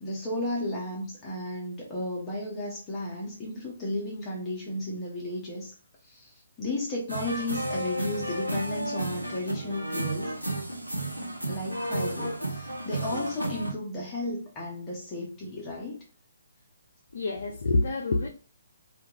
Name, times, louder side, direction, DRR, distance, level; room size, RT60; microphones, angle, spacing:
voice 1, 0.0-5.7 6.1-6.3 6.6-10.3 11.5-16.0, left 1 dB, 20° left, 0.6 m, -33 dB
sound 1, 7.1-13.7, right 1 dB, 85° right, 0.6 m, -32 dB
voice 2, 17.1-18.3, left 2 dB, 55° left, 0.3 m, -26 dB
2.2 x 2.2 x 3.0 m
figure-of-eight pair, 135°, 0 cm